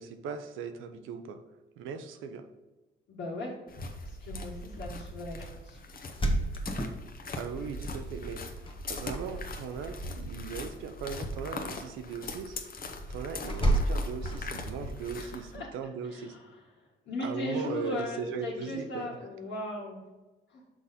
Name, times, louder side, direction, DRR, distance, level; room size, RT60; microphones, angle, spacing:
voice 1, 0.0-1.4 1.8-2.5 7.3-8.4 8.9-16.4 17.2-19.1, right 6 dB, 90° right, 8 dB, 0.7 m, -38 dB
voice 2, 3.1-3.6 4.0-5.8 15.1-15.7 16.0-16.4 17.0-20.0 20.5-20.6, left 1 dB, 65° left, -7 dB, 1.7 m, -38 dB
sound 1, 3.7-15.6, left 2 dB, 45° left, 0.9 m, -40 dB
sound 2, 6.0-7.5 8.7-9.2 9.5-10.0 13.5-14.8, right 1 dB, 25° left, 1.1 m, -30 dB
6.0 x 4.1 x 5.6 m, 1.2 s
cardioid pair, 90°, 20 cm